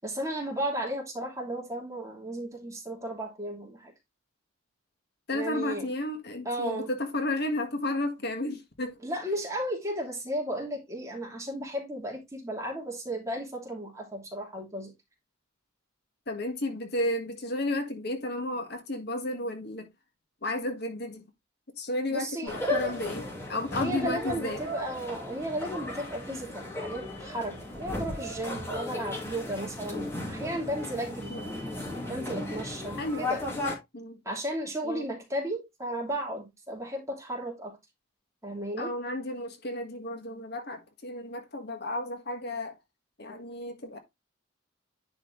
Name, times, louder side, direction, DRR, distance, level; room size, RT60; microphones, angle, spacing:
voice 1, 0.0-3.9 5.3-5.9 6.4-6.9 9.0-14.9 22.1-22.6 23.8-31.4 32.1-33.4 34.2-37.8 38.4-39.0, right 1 dB, 15° right, 2.8 m, -34 dB
voice 2, 5.3-9.0 16.3-19.9 20.4-21.2 21.8-24.6 31.3-31.5 33.0-33.3 33.9-34.2 34.8-35.1 38.8-42.7 43.2-44.0, left 1 dB, 55° left, 1.5 m, -33 dB
sound 1, 22.5-33.7, left 2 dB, 15° left, 2.5 m, -35 dB
10.5 x 4.5 x 3.1 m
head